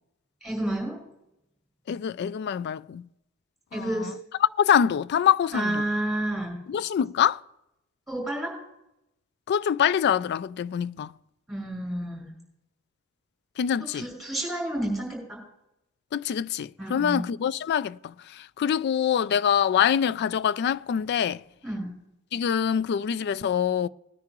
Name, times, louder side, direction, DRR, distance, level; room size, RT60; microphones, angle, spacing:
voice 1, 0.4-1.0 3.7-4.1 5.5-6.6 8.1-8.5 11.5-12.3 13.9-15.4 16.8-17.3 21.6-21.9, right 1 dB, ahead, 5.3 m, -30 dB
voice 2, 1.9-3.1 3.7-4.1 4.4-5.8 6.7-7.4 9.5-11.1 13.6-14.1 16.1-21.4 22.3-23.9, left 8 dB, 55° left, 0.3 m, -25 dB
19.0 x 9.6 x 3.0 m
head